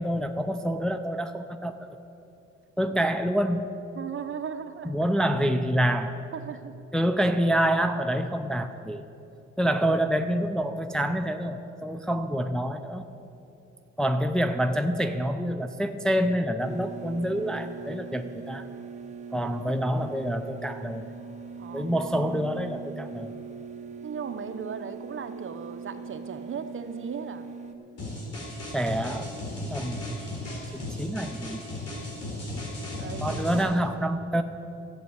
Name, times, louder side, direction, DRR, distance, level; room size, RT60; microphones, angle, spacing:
voice 1, 0.0-1.9 2.8-3.7 4.9-6.2 6.9-9.0 9.6-13.0 14.0-18.7 19.3-21.1 21.7-23.3 28.7-29.3 29.7-30.4 30.7-31.7 33.2-34.4, equal, ahead, 6 dB, 0.5 m, -27 dB
voice 2, 3.9-4.9 6.3-6.7 21.6-21.9 24.0-27.5 33.0-34.0, right 6 dB, 40° right, 8 dB, 0.9 m, -37 dB
sound 1, 16.6-27.7, right 5 dB, 25° right, 1.2 m, -41 dB
sound 2, 28.0-33.6, left 1 dB, 55° left, 3.8 m, -35 dB
12.5 x 8.1 x 8.2 m, 2.8 s
cardioid pair, 90°, 30 cm